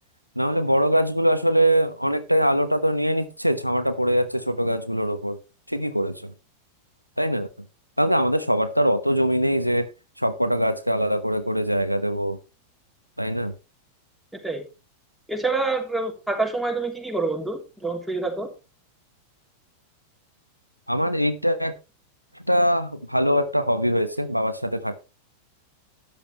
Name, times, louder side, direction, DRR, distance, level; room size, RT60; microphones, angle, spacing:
voice 1, 0.4-5.4 5.7-6.3 7.2-7.5 8.0-9.9 10.2-12.4 13.2-13.5 20.9-21.7 22.5-25.0, equal, 90° right, 10 dB, 1.1 m, -22 dB
voice 2, 15.3-18.5, right 3 dB, ahead, 1 dB, 3.3 m, -27 dB
13.0 x 10.5 x 3.1 m, 0.29 s
figure-of-eight pair, 90°, 0 cm